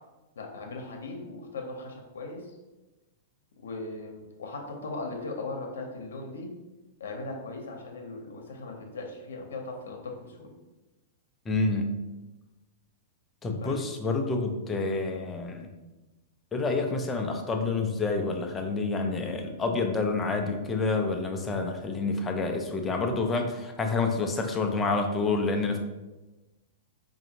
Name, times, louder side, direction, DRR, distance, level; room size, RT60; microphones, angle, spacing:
voice 1, 0.4-2.6 3.6-6.5 7.0-10.5 13.6-13.9, left 3 dB, 90° left, 2 dB, 0.7 m, -38 dB
voice 2, 11.5-12.0 13.4-15.7 16.5-25.8, left 3 dB, 15° left, 3 dB, 0.5 m, -28 dB
4.8 x 2.6 x 2.8 m, 1.1 s
hypercardioid pair, 145°, 0 cm